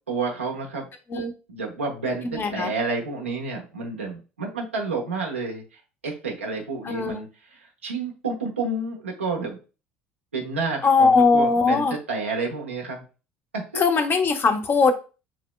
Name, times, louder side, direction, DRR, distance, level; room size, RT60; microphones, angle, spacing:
voice 1, 0.1-0.9 1.5-9.6 10.3-13.1 13.5-13.8, right 3 dB, 85° right, -1 dB, 1.0 m, -30 dB
voice 2, 2.2-2.7 6.8-7.2 10.8-11.9 13.7-14.9, left 4 dB, 35° left, 6 dB, 1.0 m, -20 dB
7.4 x 3.0 x 2.2 m, 0.32 s
figure-of-eight pair, 60°, 6 cm